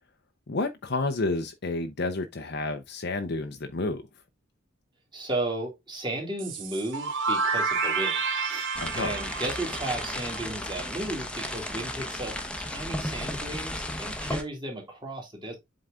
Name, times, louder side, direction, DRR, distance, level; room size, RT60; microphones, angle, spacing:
voice 1, 0.5-4.0 8.8-9.1, left 3 dB, 55° left, 0.7 m, -30 dB
voice 2, 5.1-8.2 8.5-8.7 8.9-15.6, right 2 dB, 20° right, 2.5 m, -34 dB
sound 1, 6.4-11.1, right 4 dB, 65° right, 1.1 m, -30 dB
sound 2, 8.7-14.4, left 1 dB, 5° left, 0.9 m, -34 dB
7.8 x 3.9 x 3.6 m
head